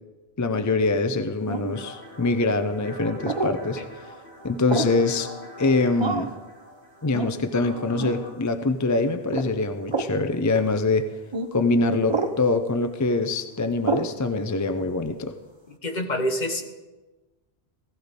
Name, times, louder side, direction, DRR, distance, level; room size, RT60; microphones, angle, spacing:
voice 1, 0.4-3.8 4.4-5.3 5.6-6.3 7.0-11.1 11.5-15.3, left 3 dB, 25° left, 8 dB, 0.4 m, -24 dB
sound 1, 1.5-1.8 3.2-3.6 4.7-5.0 6.0-6.4 7.1-7.3 8.0-8.2 9.3-9.5 9.9-10.1 11.3-11.5 12.1-12.4 13.8-14.1, right 3 dB, 30° right, 0.8 m, -27 dB
sound 2, 1.7-8.3, left 1 dB, 85° left, 4.1 m, -42 dB
voice 2, 15.8-16.6, equal, 45° left, 5 dB, 1.3 m, -26 dB
16.5 x 15.5 x 3.7 m, 1.2 s
omnidirectional pair, 1.1 m